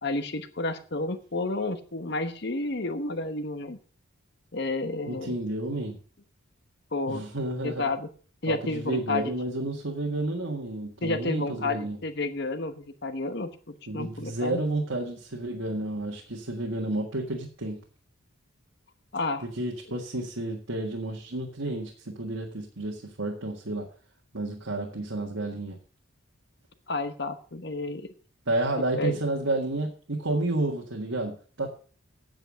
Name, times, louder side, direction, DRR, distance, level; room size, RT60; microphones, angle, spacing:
voice 1, 0.0-3.8 4.5-5.4 6.9-7.2 7.6-8.1 8.4-9.3 11.0-14.6 19.1-19.4 26.9-28.1 29.0-29.2, left 2 dB, 50° left, 9 dB, 1.1 m, -31 dB
voice 2, 5.1-6.0 7.1-7.9 8.5-12.0 13.9-17.8 19.4-23.9 24.3-25.8 28.5-31.7, right 2 dB, 70° right, 0 dB, 1.7 m, -31 dB
9.1 x 8.1 x 6.2 m, 0.41 s
head